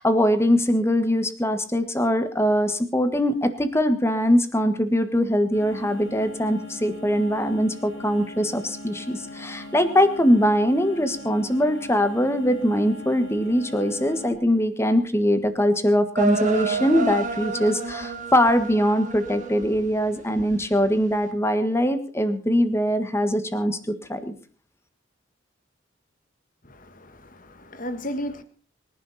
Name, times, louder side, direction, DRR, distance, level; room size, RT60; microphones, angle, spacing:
voice 1, 0.0-24.3, equal, 15° left, 10 dB, 1.6 m, -22 dB
sound 1, 5.5-14.3, left 1 dB, 65° left, 3.9 m, -40 dB
sound 2, 16.2-19.9 20.4-20.9, right 3 dB, 40° right, 2.1 m, -29 dB
voice 2, 26.6-28.4, equal, 45° left, 11 dB, 1.7 m, -34 dB
24.5 x 11.0 x 4.2 m, 0.39 s
head